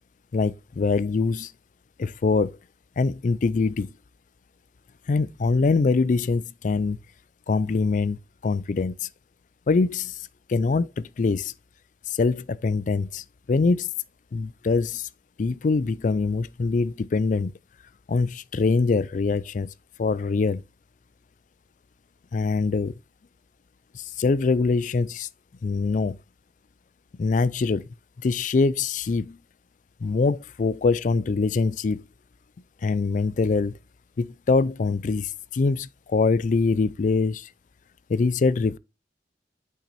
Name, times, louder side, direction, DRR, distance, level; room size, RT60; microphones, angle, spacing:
voice 1, 0.3-1.5 2.0-2.5 3.0-3.9 5.1-7.0 7.5-9.1 9.7-10.1 10.5-11.5 12.1-13.9 14.3-15.1 15.4-17.5 18.1-19.7 20.0-20.6 22.3-22.9 23.9-25.3 25.6-26.2 27.2-27.8 28.2-29.4 30.0-32.0 32.8-33.8 34.2-37.5 38.1-38.8, left 4 dB, 45° left, 0.4 m, -24 dB
6.0 x 5.7 x 4.0 m
head